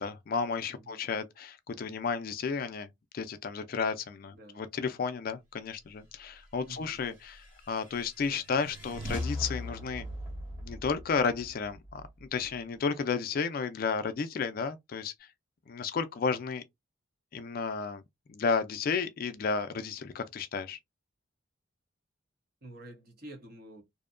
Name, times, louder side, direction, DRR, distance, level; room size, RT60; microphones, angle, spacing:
voice 1, 0.0-2.9 3.1-10.1 10.6-15.3 15.7-16.6 17.3-18.0 18.3-20.8, left 5 dB, 45° left, 0.3 m, -32 dB
voice 2, 4.3-4.6 6.7-7.0 22.6-23.8, right 1 dB, 50° right, 0.8 m, -48 dB
sound 1, 7.0-12.6, left 1 dB, 5° right, 1.1 m, -40 dB
2.7 x 2.1 x 2.4 m
head